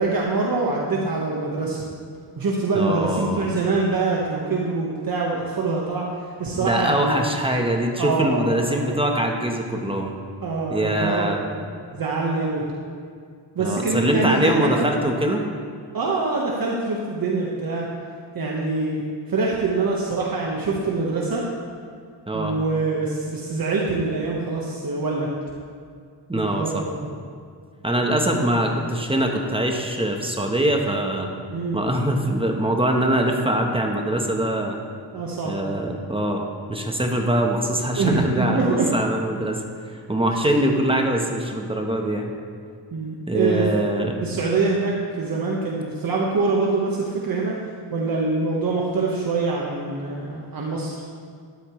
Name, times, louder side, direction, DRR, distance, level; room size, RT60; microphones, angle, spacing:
voice 1, 0.0-1.8 2.4-6.1 6.4-7.2 8.0-8.9 10.4-11.6 11.9-12.6 13.5-14.9 15.9-17.9 18.3-19.0 19.3-21.4 22.3-25.3 26.3-27.1 31.5-31.8 35.1-35.6 37.9-38.9 42.9-43.6 44.0-47.5 47.9-50.9, right 3 dB, 50° right, -3 dB, 1.3 m, -24 dB
voice 2, 2.7-3.4 6.6-10.1 10.7-11.4 13.6-15.4 22.3-22.6 26.3-26.9 27.8-31.3 31.7-34.8 35.4-36.4 36.7-39.6 40.1-42.3 43.3-44.2, right 1 dB, 10° right, 2 dB, 1.0 m, -23 dB
13.0 x 12.5 x 3.2 m, 2.1 s
wide cardioid pair, 150°, 43 cm